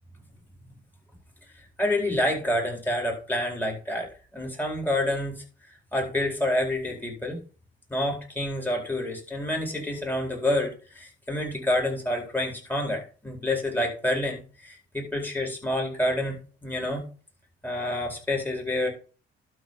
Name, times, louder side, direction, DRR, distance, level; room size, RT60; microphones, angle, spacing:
voice 1, 1.8-5.3 5.9-7.4 7.9-17.0 17.6-18.9, left 1 dB, 10° left, 0 dB, 4.5 m, -28 dB
12.0 x 4.2 x 5.5 m, 0.37 s
cardioid pair, 90°, 20 cm